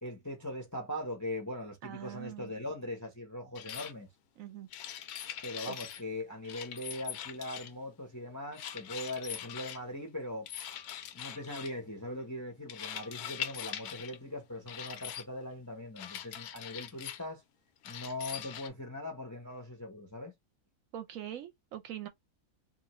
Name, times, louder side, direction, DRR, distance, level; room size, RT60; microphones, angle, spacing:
voice 1, 0.0-4.1 5.4-10.5 11.1-17.4 17.8-20.3, left 1 dB, 20° left, 0.6 m, -40 dB
voice 2, 1.8-2.5 4.4-4.7 5.2-5.8 20.9-22.1, right 11 dB, 70° right, 0.9 m, -43 dB
sound 1, 3.6-3.9 4.7-6.0 6.4-7.8 8.5-9.8 10.5-11.8 12.7-14.2 14.7-15.2 16.0-17.3 17.8-18.7, left 10 dB, 85° left, 1.1 m, -42 dB
2.6 x 2.5 x 2.9 m
omnidirectional pair, 1.6 m